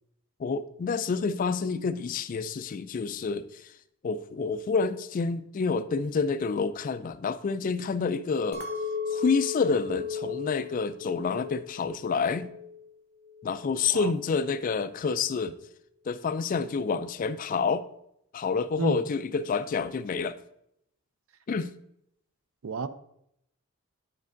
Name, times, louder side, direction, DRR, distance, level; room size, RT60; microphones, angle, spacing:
voice 1, 0.4-3.6 4.0-8.6 9.1-12.5 13.4-15.5 16.1-17.8 18.3-20.4 21.5-21.7, left 5 dB, 40° left, 0.3 m, -28 dB
Chink clink, 8.5-12.9 13.3-13.9, left 5 dB, 50° right, 1.1 m, -36 dB
voice 2, 13.9-14.1 18.8-19.0 22.6-22.9, right 4 dB, 70° right, 0.4 m, -31 dB
9.6 x 5.2 x 2.6 m
head